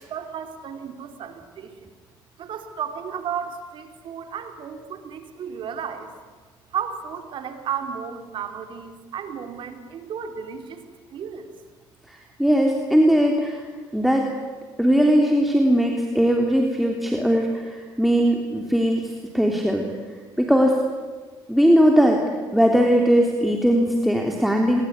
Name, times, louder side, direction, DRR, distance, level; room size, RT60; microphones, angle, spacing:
voice 1, 0.1-1.9 2.4-6.1 6.7-10.9 11.1-11.5, right 7 dB, 65° right, 6 dB, 3.7 m, -33 dB
voice 2, 12.1-13.6 13.9-14.3 14.8-19.9 20.4-20.8 21.5-22.2 22.5-24.8, equal, ahead, 1 dB, 3.4 m, -19 dB
26.0 x 22.5 x 9.7 m, 1.4 s
cardioid pair, 90°, 9 cm